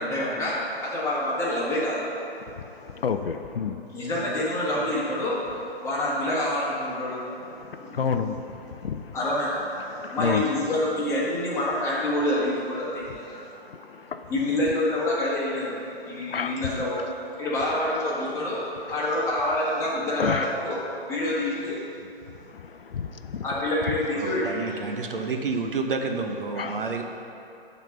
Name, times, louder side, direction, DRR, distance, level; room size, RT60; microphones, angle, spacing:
voice 1, 0.0-2.0 3.9-5.4 5.8-7.2 7.8-8.0 9.1-9.7 10.1-13.4 14.3-15.7 16.0-17.0 17.4-18.6 18.9-20.8 21.0-21.8 23.4-24.6, left 1 dB, 10° left, -8 dB, 1.6 m, -27 dB
voice 2, 2.5-3.8 7.5-9.2 9.8-10.5 13.7-14.3 16.3-16.6 20.2-20.5 22.5-23.4 26.6-26.8, left 6 dB, 70° left, 8 dB, 0.5 m, -30 dB
voice 3, 24.1-27.0, right 4 dB, 60° right, 4 dB, 0.8 m, -29 dB
8.9 x 4.1 x 6.5 m, 2.8 s
figure-of-eight pair, 125°, 30 cm